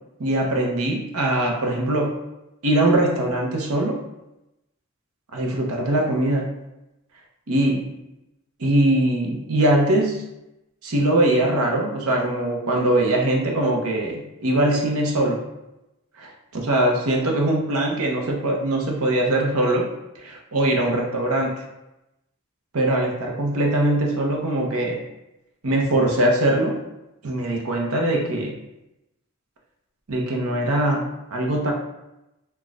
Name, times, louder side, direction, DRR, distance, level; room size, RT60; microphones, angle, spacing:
voice 1, 0.2-2.2 2.6-4.0 5.3-6.5 7.5-7.9 8.6-10.2 10.8-15.5 16.2-19.9 20.2-21.5 22.7-25.0 25.6-26.8 27.2-28.5 30.1-31.7, right 1 dB, 80° right, 0 dB, 0.8 m, -22 dB
5.8 x 2.3 x 2.4 m, 0.92 s
head